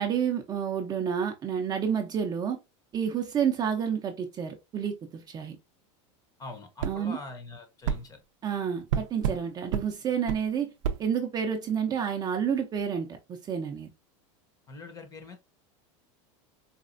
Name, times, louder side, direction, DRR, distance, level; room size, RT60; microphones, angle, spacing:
voice 1, 0.0-2.6 2.9-5.6 6.8-7.2 8.4-10.7 11.0-13.9, right 7 dB, 25° right, 0.5 m, -29 dB
voice 2, 6.4-8.2 14.7-15.4, left 3 dB, 20° left, 0.8 m, -43 dB
sound 1, 6.8-7.0 7.8-8.0 8.9-9.4 9.7-9.9 10.3-10.4 10.8-11.0, right 8 dB, 85° right, 0.4 m, -28 dB
4.1 x 2.3 x 2.4 m
supercardioid pair, 130°, 16 cm